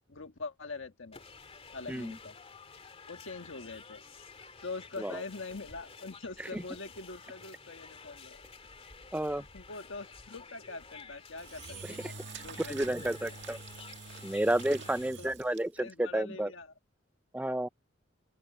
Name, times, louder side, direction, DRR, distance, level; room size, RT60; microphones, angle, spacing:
voice 1, 0.1-1.2 1.7-2.4 3.1-4.0 4.6-8.4 9.3-13.4 14.2-14.3 14.9-16.7, left 3 dB, 70° left, 1.6 m, -44 dB
sound 1, 1.1-15.1, left 5 dB, 30° left, 2.3 m, -51 dB
voice 2, 9.1-9.4 12.7-13.6 14.2-16.5 17.3-17.7, right 1 dB, 5° right, 0.5 m, -31 dB
Engine / Drill, 11.4-15.9, right 4 dB, 65° right, 1.9 m, -46 dB
open air
head